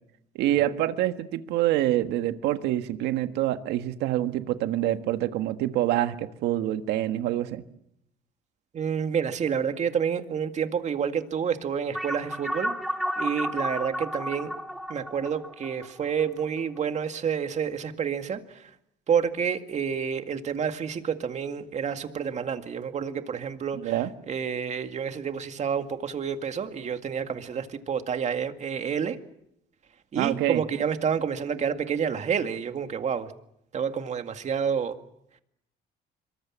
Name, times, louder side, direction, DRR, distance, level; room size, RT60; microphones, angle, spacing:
voice 1, 0.3-7.6 23.7-24.1 30.1-30.6, right 13 dB, 90° right, 9 dB, 1.6 m, -26 dB
voice 2, 8.7-12.8 13.2-14.5 14.9-18.7 19.1-29.2 30.1-33.3 33.7-35.0, right 7 dB, 45° right, 7 dB, 2.1 m, -29 dB
sound 1, 11.9-16.8, equal, ahead, 2.6 m, -32 dB
26.0 x 23.0 x 7.4 m, 0.77 s
cardioid pair, 110°, 17 cm